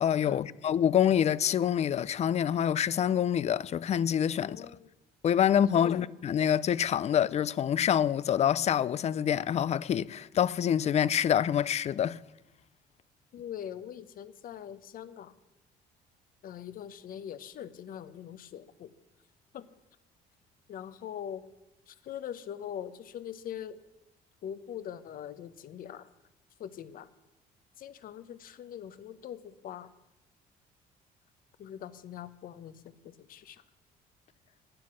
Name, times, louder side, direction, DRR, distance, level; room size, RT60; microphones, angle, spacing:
voice 1, 0.0-4.6 5.2-12.2, left 9 dB, 40° left, 0.4 m, -26 dB
voice 2, 4.4-4.9 5.8-6.0 13.3-15.3 16.4-18.9 19.5-19.7 20.7-21.4 21.9-23.8 24.4-26.1 26.6-27.1 27.8-29.9 31.6-33.6, left 9 dB, 55° left, 0.9 m, -42 dB
12.5 x 9.4 x 6.3 m
cardioid pair, 110°, 17 cm